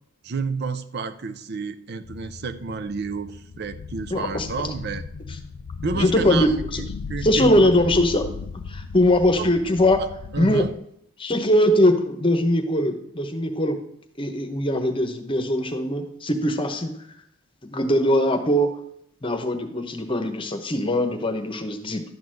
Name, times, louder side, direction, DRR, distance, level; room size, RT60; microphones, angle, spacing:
voice 1, 0.2-5.0 5.8-7.7 9.4-9.5 10.3-10.7, right 4 dB, 50° right, 10 dB, 0.5 m, -30 dB
sound 1, 2.0-10.7, left 5 dB, 75° left, 0.4 m, -36 dB
voice 2, 4.1-4.7 5.9-6.8 7.2-8.3 8.7-10.0 10.4-10.6 11.2-13.8 14.2-16.9 17.6-18.7 19.2-22.0, left 1 dB, 25° left, 6 dB, 1.0 m, -21 dB
12.0 x 4.0 x 7.7 m, 0.72 s
head